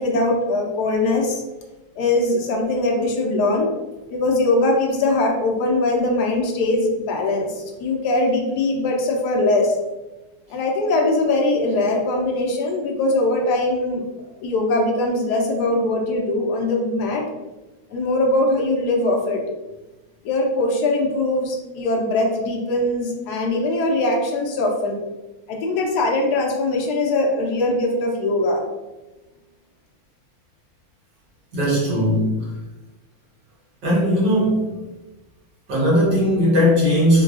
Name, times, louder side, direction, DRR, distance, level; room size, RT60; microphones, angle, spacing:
voice 1, 0.0-1.4 2.0-3.7 4.1-9.8 10.5-14.0 14.4-17.2 17.9-19.4 20.2-25.0 25.5-28.6, left 2 dB, 75° left, 0 dB, 0.9 m, -21 dB
voice 2, 31.5-32.5 33.8-34.7 35.7-37.2, equal, 60° right, -6 dB, 1.8 m, -18 dB
4.6 x 2.3 x 2.4 m, 1.1 s
omnidirectional pair, 2.4 m